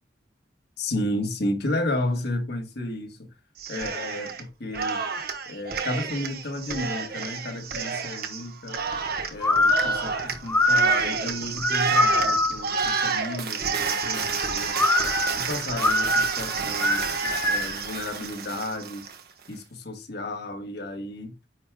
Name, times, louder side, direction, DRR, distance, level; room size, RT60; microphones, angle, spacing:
voice 1, 0.8-3.3 3.7-5.0 5.5-8.8 9.3-14.8 15.4-19.1 19.5-21.4, left 1 dB, 65° left, 1.4 m, -32 dB
Cheering, 3.6-4.4 4.7-19.2, right 5 dB, 60° right, 1.2 m, -30 dB
sound 1, 9.4-12.7 14.7-17.8, left 1 dB, 10° left, 0.9 m, -23 dB
9.5 x 4.6 x 2.2 m
head